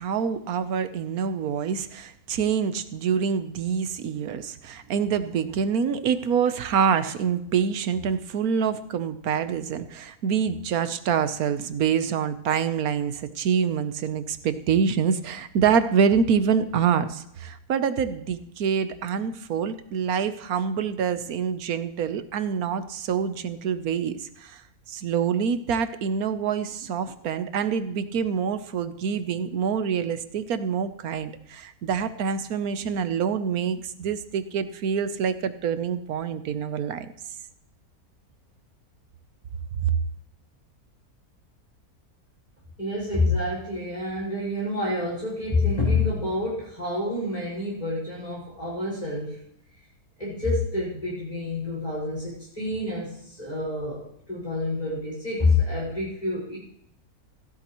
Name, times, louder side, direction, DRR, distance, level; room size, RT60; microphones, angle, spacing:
voice 1, 0.0-24.6 24.9-37.1 39.8-39.9, right 7 dB, 75° right, 11 dB, 1.3 m, -26 dB
voice 2, 42.8-49.4 50.2-56.6, left 2 dB, 25° left, -8 dB, 5.4 m, -27 dB
15.0 x 12.5 x 3.0 m, 0.74 s
omnidirectional pair, 1.6 m